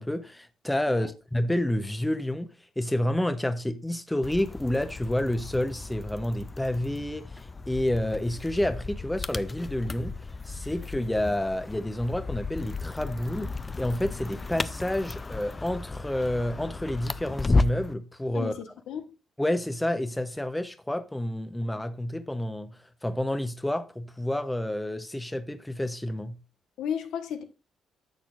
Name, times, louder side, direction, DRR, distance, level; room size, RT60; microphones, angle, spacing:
voice 1, 0.0-10.2 10.5-13.5 13.8-18.5 19.4-26.4, left 1 dB, 10° left, 0.8 m, -29 dB
sound 1, 4.2-17.9, left 3 dB, 25° left, 0.4 m, -34 dB
voice 2, 18.3-19.1 26.8-27.4, left 8 dB, 85° left, 1.2 m, -34 dB
10.5 x 6.9 x 2.5 m
cardioid pair, 90°, 0 cm